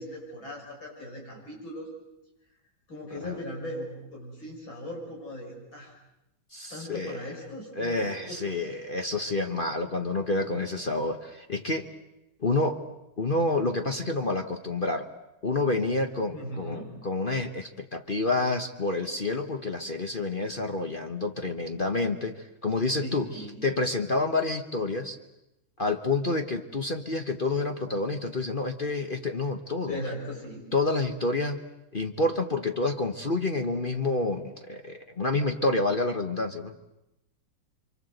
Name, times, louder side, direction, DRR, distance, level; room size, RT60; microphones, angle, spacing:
voice 1, 0.0-1.9 2.9-5.9 6.7-8.7 16.3-16.9 23.0-23.7 29.9-30.7, equal, 80° left, -2 dB, 7.5 m, -39 dB
voice 2, 6.5-7.3 7.8-11.9 12.4-12.8 13.2-15.1 15.4-25.2 25.8-30.0 30.7-31.6 31.9-36.7, left 2 dB, 30° left, 6 dB, 1.1 m, -28 dB
28.5 x 25.0 x 8.0 m, 0.91 s
omnidirectional pair, 2.1 m